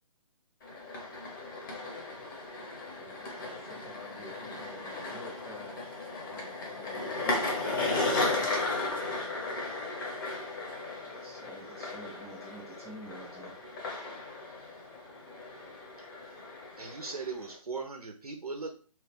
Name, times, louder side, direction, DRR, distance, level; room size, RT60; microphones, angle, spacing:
sound 1, 0.6-17.6, left 2 dB, 35° left, 0.9 m, -36 dB
voice 1, 2.8-8.4, left 2 dB, 60° left, -5 dB, 1.3 m, -50 dB
voice 2, 11.1-13.5, right 1 dB, ahead, -10 dB, 0.3 m, -48 dB
voice 3, 16.8-18.7, right 4 dB, 85° right, 4 dB, 0.5 m, -38 dB
2.9 x 2.3 x 3.3 m, 0.42 s
figure-of-eight pair, 140°, 18 cm